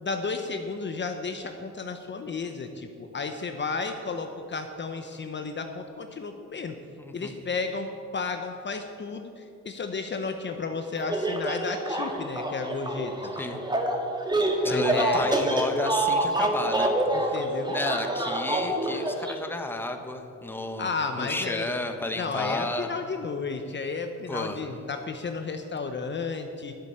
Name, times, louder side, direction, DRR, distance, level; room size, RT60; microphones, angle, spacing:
voice 1, 0.0-6.8 7.1-13.3 14.7-15.3 17.1-17.8 20.8-21.7 22.2-26.7, left 4 dB, 40° left, 6 dB, 0.9 m, -33 dB
voice 2, 7.0-7.3 13.3-13.6 14.6-17.4 17.7-22.9 24.3-24.6, left 2 dB, 5° left, 5 dB, 1.1 m, -32 dB
sound 1, 11.0-19.3, right 1 dB, 15° right, 1.6 m, -27 dB
10.5 x 8.3 x 8.0 m, 2.6 s
cardioid pair, 90°, 30 cm